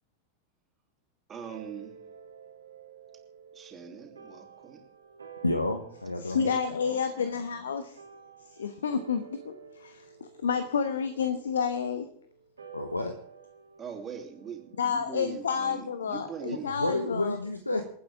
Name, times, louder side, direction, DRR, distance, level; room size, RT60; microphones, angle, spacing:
voice 1, 1.3-1.9 3.5-4.8 6.4-6.6 6.9-7.0 13.8-16.7 17.7-17.8, right 7 dB, 25° right, 3 dB, 3.3 m, -41 dB
sound 1, 1.5-16.2, right 7 dB, 75° right, 2.7 m, -52 dB
voice 2, 5.4-6.5 12.7-13.2 16.8-17.8, left 2 dB, 85° left, 7 dB, 1.3 m, -30 dB
voice 3, 6.2-8.0 8.5-12.1 14.8-17.4, left 6 dB, 65° left, 10 dB, 1.1 m, -30 dB
28.0 x 9.4 x 3.6 m, 0.64 s
figure-of-eight pair, 90°, 0 cm